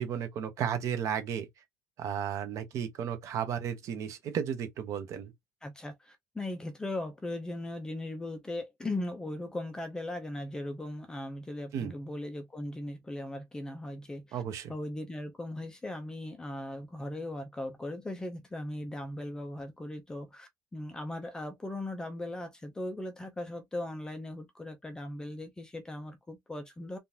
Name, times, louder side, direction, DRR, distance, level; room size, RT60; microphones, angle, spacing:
voice 1, 0.0-1.5 2.0-5.3 11.7-11.9 14.3-14.7, right 8 dB, 45° right, 0.9 m, -34 dB
voice 2, 5.6-14.4 14.7-27.0, left 1 dB, 10° left, 0.5 m, -38 dB
3.6 x 2.5 x 2.8 m
cardioid pair, 170°, 7 cm